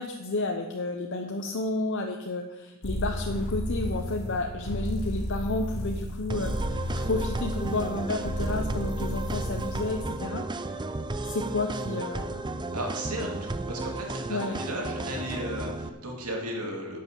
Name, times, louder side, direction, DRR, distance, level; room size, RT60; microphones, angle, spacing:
voice 1, 0.0-10.4 11.2-12.5 14.3-14.6, left 2 dB, 60° left, 4 dB, 0.8 m, -31 dB
sound 1, 2.8-10.1, equal, 75° left, 2.4 m, -33 dB
sound 2, 6.3-15.9, right 3 dB, 20° right, 0.5 m, -34 dB
voice 2, 12.7-17.0, equal, 90° right, 0 dB, 2.6 m, -35 dB
11.0 x 7.7 x 6.6 m, 1.1 s
head